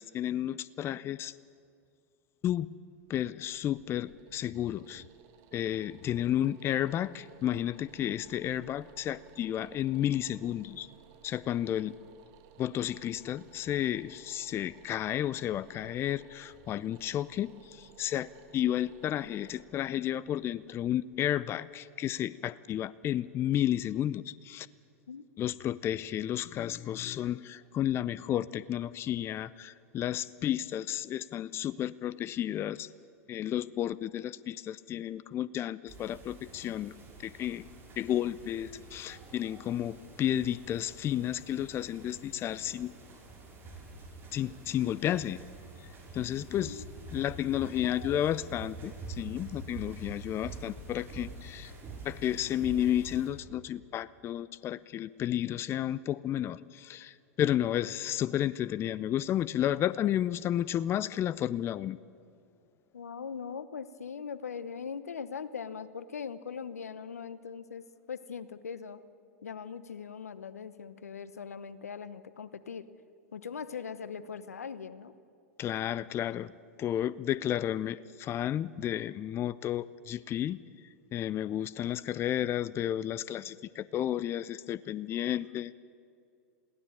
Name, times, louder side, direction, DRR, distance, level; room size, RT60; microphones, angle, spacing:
voice 1, 0.0-1.3 2.4-2.7 3.1-5.1 5.5-10.9 11.2-12.0 12.6-24.7 25.4-32.9 33.3-36.9 37.2-37.6 38.0-42.9 44.3-45.4 45.8-46.8 47.1-51.7 52.0-62.0 75.6-76.5 76.8-80.6 81.1-85.7, left 11 dB, 30° left, 18 dB, 0.5 m, -32 dB
sound 1, 3.0-22.0, right 10 dB, 50° right, 1.8 m, -58 dB
sound 2, 35.9-53.3, right 3 dB, 30° right, 5.5 m, -46 dB
voice 2, 47.8-48.2 62.9-69.0 69.4-72.9 73.3-75.1, left 6 dB, 85° left, 15 dB, 1.0 m, -41 dB
21.5 x 16.0 x 8.7 m, 2.4 s
hypercardioid pair, 95°, 8 cm